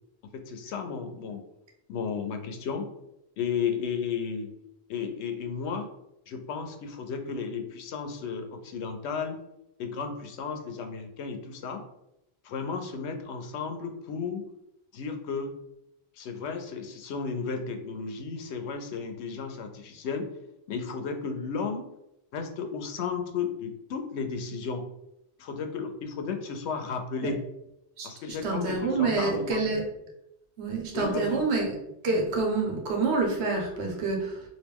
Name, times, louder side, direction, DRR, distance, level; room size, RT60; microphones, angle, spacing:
voice 1, 0.3-1.4 1.9-2.9 3.4-4.5 4.9-5.9 6.3-9.4 9.8-11.8 12.4-14.4 14.9-15.5 16.1-20.3 20.7-21.9 22.3-24.8 25.4-27.4 28.0-29.7 30.9-31.4, left 5 dB, 85° left, 6 dB, 0.9 m, -33 dB
voice 2, 28.0-29.9 30.6-31.7 32.0-34.4, right 3 dB, 90° right, 0 dB, 1.1 m, -27 dB
3.0 x 2.6 x 3.4 m, 0.85 s
omnidirectional pair, 1.1 m